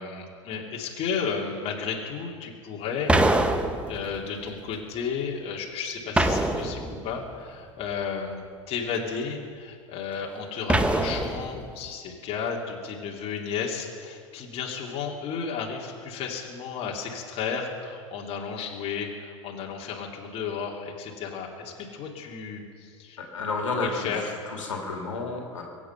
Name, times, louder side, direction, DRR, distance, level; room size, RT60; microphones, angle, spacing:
voice 1, 0.0-3.1 3.9-23.2 23.7-24.5, left 6 dB, 40° left, -1 dB, 2.6 m, -33 dB
sound 1, 3.1-4.3 6.2-7.2 10.7-11.7, right 1 dB, 5° right, 0.9 m, -24 dB
voice 2, 23.2-25.6, left 3 dB, 80° left, 1 dB, 2.5 m, -31 dB
23.0 x 8.7 x 5.6 m, 2.1 s
figure-of-eight pair, 90°, 16 cm